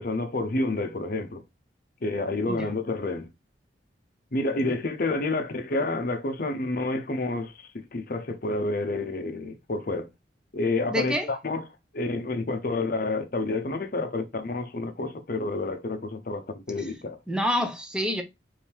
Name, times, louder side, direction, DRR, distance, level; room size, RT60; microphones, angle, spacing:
voice 1, 0.0-1.4 2.0-3.3 4.3-10.1 10.5-11.6 11.9-17.2, left 2 dB, 50° left, 0.8 m, -29 dB
voice 2, 10.9-11.3 17.3-18.2, left 1 dB, 5° right, 0.7 m, -27 dB
3.6 x 2.7 x 4.4 m
head